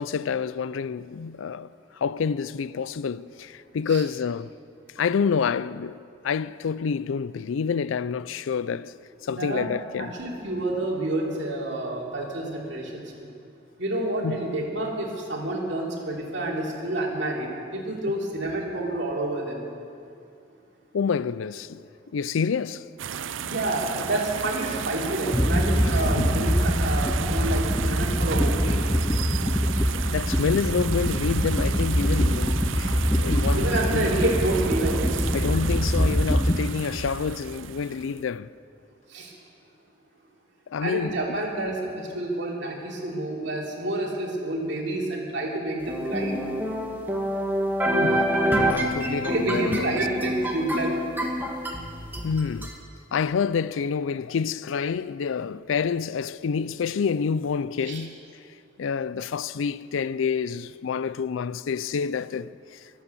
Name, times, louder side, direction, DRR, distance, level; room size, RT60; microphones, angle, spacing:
voice 1, 0.0-4.5 5.0-8.9 9.2-10.1 14.2-14.4 20.9-22.9 26.2-26.3 30.1-34.1 35.3-38.5 40.7-41.4 47.9-50.1 52.2-52.7 53.1-58.2 58.8-62.8, left 6 dB, 85° left, 0.4 m, -28 dB
voice 2, 9.3-9.7 10.0-13.3 13.8-19.7 23.4-28.8 33.5-35.3 39.1-39.3 40.8-46.3 49.2-50.9 57.9-58.0, right 1 dB, 60° right, 3.0 m, -29 dB
sound 1, 23.0-38.2, right 7 dB, 80° right, 0.5 m, -33 dB
sound 2, 25.3-36.6, equal, 10° left, 0.7 m, -24 dB
sound 3, 45.9-52.7, equal, 10° right, 1.4 m, -26 dB
23.0 x 8.5 x 7.0 m
head